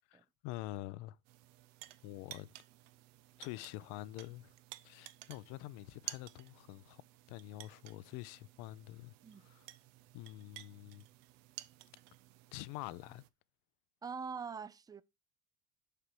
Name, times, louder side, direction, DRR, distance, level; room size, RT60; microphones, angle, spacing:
voice 1, 0.1-1.2 2.0-2.5 3.4-4.5 4.8-7.0 7.3-9.7 10.1-11.1 12.5-13.2, left 17 dB, 70° left, 0.6 m, -46 dB
sound 1, 1.2-13.3, right 16 dB, 80° right, 0.6 m, -54 dB
voice 2, 14.0-15.0, right 5 dB, 10° right, 0.4 m, -43 dB
6.7 x 4.8 x 4.5 m
hypercardioid pair, 70°, 38 cm